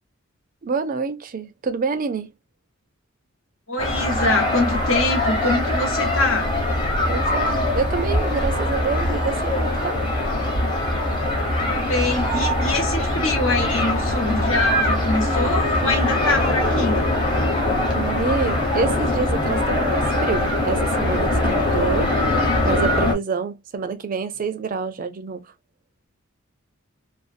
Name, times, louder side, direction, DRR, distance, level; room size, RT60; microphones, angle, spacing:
voice 1, 0.6-2.3 7.1-10.0 17.9-22.1 22.6-25.5, right 5 dB, 45° right, 0.4 m, -27 dB
voice 2, 3.7-6.5 11.6-17.1, left 2 dB, 80° left, 1.1 m, -24 dB
sound 1, 3.8-23.1, left 1 dB, 25° left, 0.9 m, -22 dB
2.6 x 2.2 x 2.4 m
head